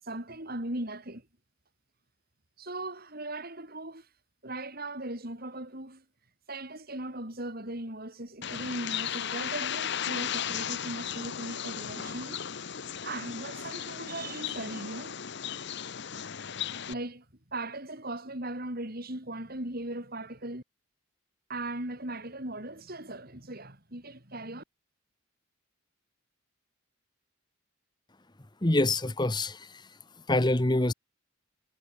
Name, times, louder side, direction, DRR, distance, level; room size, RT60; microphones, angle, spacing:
voice 1, 0.0-1.3 2.6-4.1 4.4-6.0 6.5-12.4 13.0-15.1 16.9-20.6 21.5-24.6, right 1 dB, 45° right, 6.5 m, -38 dB
Bird, 8.4-16.9, left 8 dB, 55° left, 1.0 m, -36 dB
voice 2, 28.6-29.7 30.3-30.9, left 2 dB, 20° left, 1.2 m, -25 dB
head